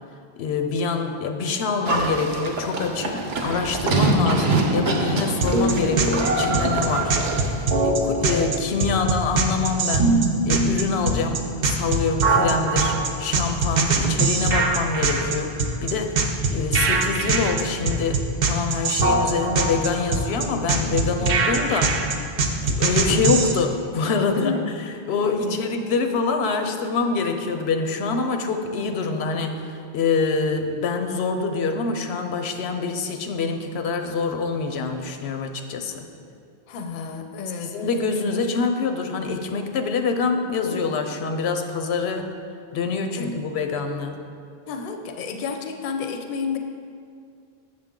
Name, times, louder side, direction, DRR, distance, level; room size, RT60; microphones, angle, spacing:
voice 1, 0.4-7.2 7.8-16.2 16.5-22.0 22.6-36.1 37.6-42.3 42.7-44.2, left 4 dB, 90° left, 6 dB, 0.9 m, -25 dB
Livestock farm animals working animals, 1.9-7.6, right 2 dB, 85° right, 1.1 m, -24 dB
sound 1, 5.4-23.5, right 3 dB, 50° right, 0.7 m, -22 dB
voice 2, 24.4-24.8 25.3-25.6 36.7-37.7 40.7-40.8 43.2-43.4 44.7-46.6, left 5 dB, 60° left, 5 dB, 0.7 m, -31 dB
7.6 x 6.4 x 3.7 m, 2.3 s
omnidirectional pair, 1.0 m